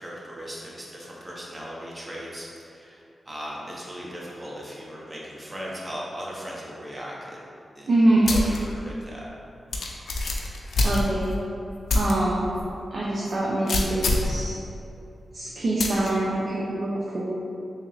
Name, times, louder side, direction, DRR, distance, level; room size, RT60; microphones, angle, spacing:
voice 1, 0.0-7.4 7.7-7.9 8.2-9.3, equal, 30° right, -4 dB, 0.9 m, -38 dB
voice 2, 7.9-8.3 10.8-11.4 11.9-12.5 12.9-14.6 15.3-17.3, right 1 dB, 70° right, -6 dB, 0.5 m, -24 dB
sound 1, 8.2-8.6 9.0-9.1 9.7-11.4 11.9-12.1 12.6-12.7 13.7-14.4 15.8-16.1, left 2 dB, 75° left, 0.4 m, -25 dB
3.4 x 2.8 x 3.2 m, 2.7 s
cardioid pair, 55°, 0 cm